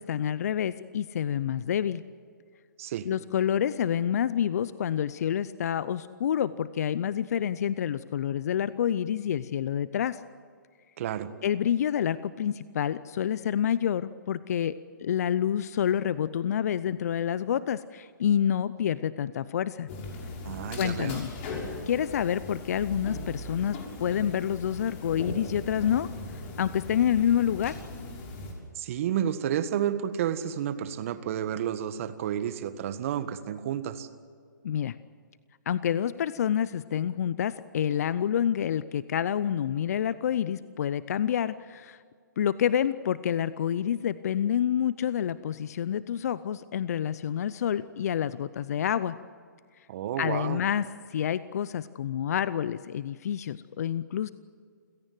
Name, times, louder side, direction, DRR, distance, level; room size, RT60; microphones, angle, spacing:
voice 1, 0.0-2.0 3.0-10.2 11.4-19.9 20.8-21.3 21.9-26.1 26.6-27.8 34.6-35.0 35.7-42.0 42.4-49.2 50.2-54.3, left 9 dB, 50° left, 16 dB, 0.7 m, -28 dB
voice 2, 11.0-11.3 20.4-21.2 28.7-34.1 49.9-50.6, right 10 dB, 45° right, 11 dB, 1.7 m, -31 dB
sound 1, 19.9-28.5, left 2 dB, 35° left, 6.2 m, -39 dB
29.0 x 16.5 x 7.9 m, 2.1 s
figure-of-eight pair, 135°, 11 cm